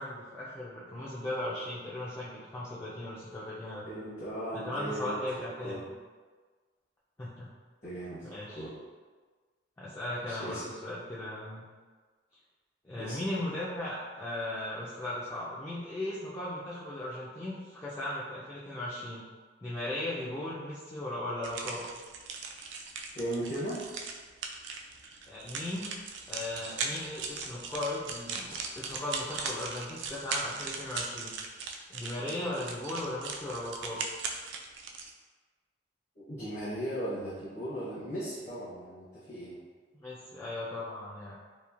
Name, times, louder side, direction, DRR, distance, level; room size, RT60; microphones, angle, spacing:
voice 1, 0.0-3.9 4.5-5.8 7.2-7.5 8.2-8.7 9.8-11.6 12.8-19.3 19.6-21.9 25.3-26.0 26.3-31.3 31.9-34.1 40.0-41.4, left 1 dB, 15° left, -7 dB, 0.3 m, -37 dB
voice 2, 3.8-5.2 5.6-5.9 7.8-8.3 8.5-8.8 10.3-10.7 12.9-13.2 23.1-23.8 36.2-39.6, right 1 dB, 40° left, -11 dB, 0.8 m, -37 dB
sound 1, 21.4-35.1, right 4 dB, 90° right, 0.3 m, -39 dB
2.9 x 2.4 x 2.4 m, 1.4 s
head